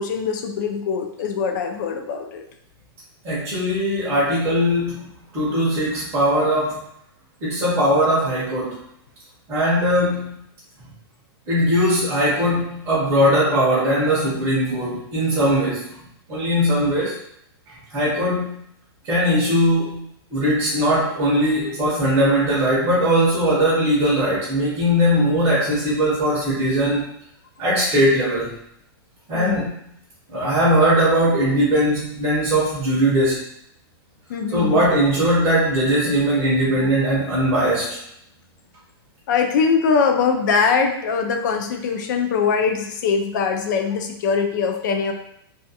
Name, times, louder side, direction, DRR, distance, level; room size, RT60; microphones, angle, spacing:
voice 1, 0.0-2.4 29.3-29.6 34.3-34.8 39.3-45.1, left 5 dB, 45° left, 4 dB, 0.4 m, -22 dB
voice 2, 3.2-5.0 5.3-6.8 7.4-8.8 9.5-10.4 11.5-16.0 16.3-17.2 17.7-18.6 19.0-20.0 20.3-27.0 27.6-28.5 29.3-29.7 30.3-33.4 34.5-38.0, equal, 20° right, -7 dB, 0.6 m, -20 dB
2.3 x 2.2 x 2.7 m, 0.73 s
supercardioid pair, 165°, 13 cm